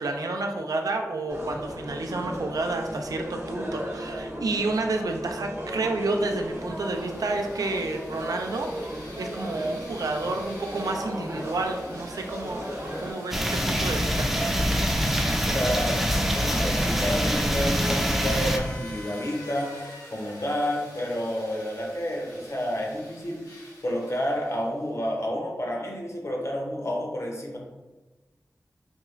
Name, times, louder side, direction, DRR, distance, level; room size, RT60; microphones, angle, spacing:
voice 1, 0.0-14.3, right 2 dB, 85° right, 3 dB, 0.4 m, -30 dB
sound 1, 1.3-13.1, equal, 45° right, 0.8 m, -36 dB
sound 2, 6.2-24.9, left 1 dB, 85° left, 0.9 m, -45 dB
sound 3, 13.3-18.6, equal, 5° right, 0.4 m, -24 dB
voice 2, 15.4-16.0 16.3-27.6, equal, 50° left, -1 dB, 0.7 m, -30 dB
3.4 x 2.3 x 3.1 m, 1.2 s
wide cardioid pair, 60°, 6 cm